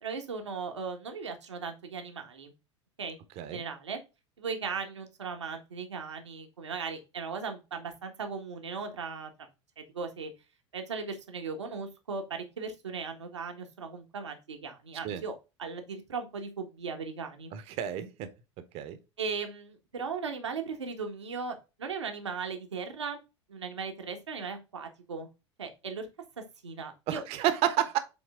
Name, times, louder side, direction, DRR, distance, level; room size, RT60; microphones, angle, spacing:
voice 1, 0.0-2.5 3.0-4.0 4.4-9.3 9.8-10.3 10.7-15.3 15.6-17.5 19.2-23.2 23.5-25.3 25.6-26.1 26.6-27.2, right 5 dB, 75° right, 1.5 m, -37 dB
voice 2, 17.5-18.3 18.7-19.0 27.1-28.0, right 11 dB, 40° right, 1.1 m, -30 dB
7.9 x 3.8 x 3.6 m
figure-of-eight pair, 80°, 15 cm